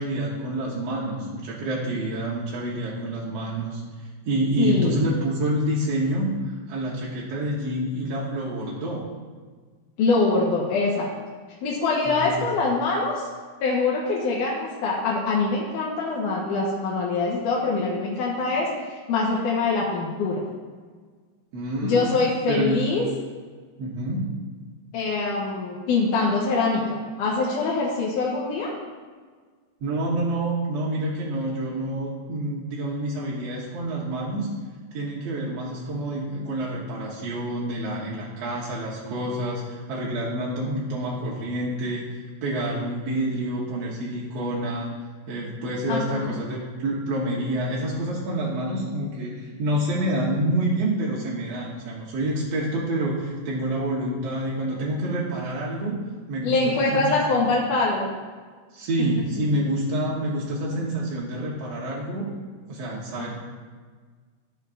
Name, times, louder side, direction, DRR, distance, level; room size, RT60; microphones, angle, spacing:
voice 1, 0.0-3.8 4.2-9.1 12.1-12.5 21.5-22.2 22.5-22.8 23.8-24.3 29.8-34.5 34.9-44.9 45.3-57.4 58.7-62.3 62.7-63.4, right 1 dB, 65° right, -5 dB, 1.9 m, -28 dB
voice 2, 4.6-5.0 10.0-11.1 11.6-13.3 13.6-20.4 21.8-23.0 24.9-28.7 45.9-46.3 56.4-58.1 63.2-63.4, left 3 dB, 75° left, -4 dB, 2.6 m, -24 dB
14.0 x 6.8 x 2.6 m, 1.5 s
omnidirectional pair, 3.8 m